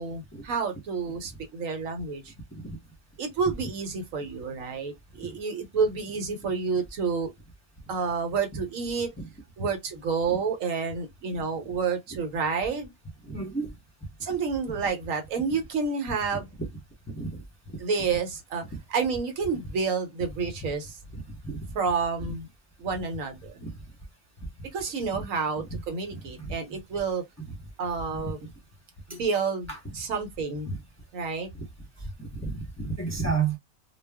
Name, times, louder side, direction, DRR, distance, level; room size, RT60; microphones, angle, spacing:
voice 1, 0.0-2.3 3.2-7.3 7.9-9.1 9.6-12.9 14.2-16.5 17.8-18.6 18.9-21.0 21.7-22.5 22.8-23.6 24.7-27.2 27.8-28.4 29.1-29.7 29.9-30.7 31.1-31.5, right 5 dB, 70° right, 1.1 m, -29 dB
voice 2, 13.3-13.7 16.3-16.7 17.2-17.3 21.4-21.6 22.3-22.4 23.6-23.7 25.1-25.2 26.4-26.5 28.3-28.4 29.1-29.2 29.7-29.9 30.7-30.8 32.4-33.6, right 4 dB, 15° left, 0.8 m, -31 dB
2.3 x 2.2 x 3.4 m
omnidirectional pair, 1.5 m